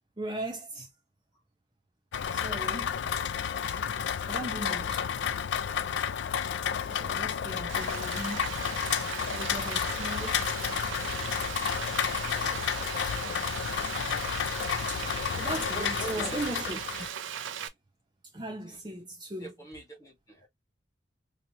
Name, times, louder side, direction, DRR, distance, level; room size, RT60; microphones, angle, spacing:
voice 1, 0.2-0.9 2.3-2.9 4.3-5.1 6.9-8.5 9.3-10.4 14.9-17.1 18.3-19.5, right 1 dB, 25° right, 0.7 m, -38 dB
Rain, 2.1-17.1, left 8 dB, 70° left, 0.3 m, -31 dB
Frying (food), 7.7-17.7, right 8 dB, 90° right, 0.5 m, -38 dB
voice 2, 15.7-16.4 18.7-18.8 19.4-20.5, equal, 20° left, 1.3 m, -42 dB
3.1 x 2.8 x 2.7 m
head